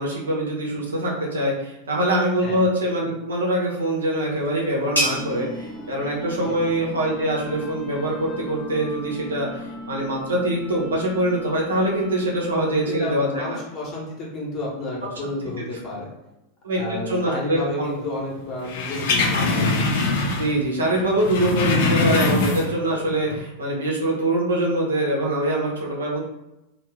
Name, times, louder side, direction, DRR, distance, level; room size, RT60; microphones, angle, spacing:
voice 1, 0.0-13.6 16.6-17.9 20.4-26.2, right 1 dB, 70° right, -2 dB, 0.9 m, -24 dB
sound 1, 3.6-9.0, equal, 80° left, 0.9 m, -33 dB
sound 2, 5.0-13.2, left 1 dB, 15° left, 0.7 m, -38 dB
voice 2, 12.7-16.1 16.7-19.8, left 1 dB, 35° left, -3 dB, 1.2 m, -31 dB
sound 3, 18.7-20.6 20.9-22.9 23.2-23.3, left 3 dB, 55° left, 0.5 m, -22 dB
2.7 x 2.5 x 3.5 m, 0.92 s
figure-of-eight pair, 90°, 0 cm